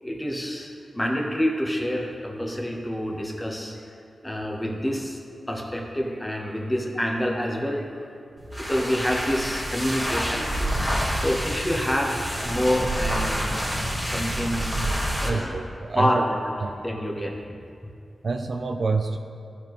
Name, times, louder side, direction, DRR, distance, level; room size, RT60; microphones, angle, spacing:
voice 1, 0.0-3.8 4.2-5.2 5.5-7.9 8.6-10.5 11.2-13.6 14.0-14.7 15.2-15.6 15.9-16.4 16.8-17.4, equal, 10° left, 0 dB, 1.0 m, -27 dB
sound 1, 8.4-15.4, equal, 5° right, 1.6 m, -28 dB
voice 2, 15.2-16.2 16.6-16.8 17.2-17.3 18.2-19.2, right 4 dB, 60° right, 5 dB, 0.4 m, -27 dB
14.0 x 5.1 x 3.1 m, 2.5 s
wide cardioid pair, 100°, 0 cm